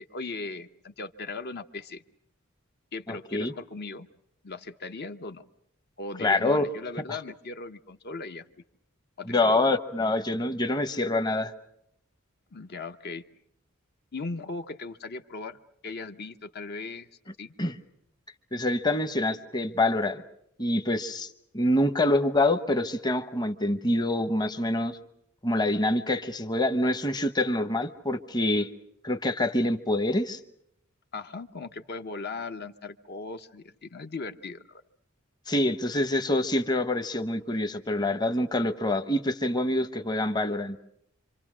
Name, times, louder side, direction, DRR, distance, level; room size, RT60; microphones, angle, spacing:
voice 1, 0.0-2.0 2.9-4.1 4.4-5.4 6.0-8.5 9.2-9.6 12.5-13.2 14.1-15.6 15.8-17.1 17.4-17.5 31.1-34.8, left 3 dB, 50° left, 7 dB, 0.9 m, -38 dB
voice 2, 3.1-3.5 6.2-6.7 7.1-7.2 9.3-11.5 17.6-17.7 18.5-20.2 20.6-21.3 21.5-25.0 25.4-28.7 29.0-30.4 35.5-40.8, left 1 dB, 20° left, 9 dB, 0.9 m, -26 dB
26.5 x 26.0 x 6.2 m, 0.75 s
head